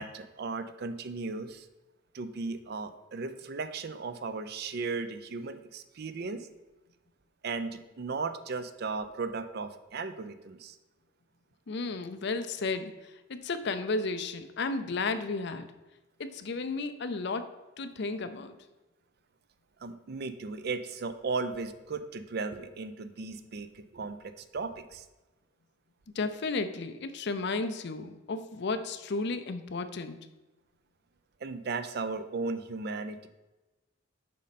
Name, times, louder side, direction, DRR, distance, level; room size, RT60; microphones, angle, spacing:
voice 1, 0.0-1.7 2.1-6.5 7.4-10.8 19.8-25.1 31.4-33.3, right 4 dB, 55° right, 10 dB, 0.5 m, -36 dB
voice 2, 11.7-15.7 16.2-17.5 17.8-18.6 26.1-30.2, left 3 dB, 60° left, 10 dB, 0.5 m, -33 dB
7.4 x 5.2 x 4.2 m, 1.1 s
head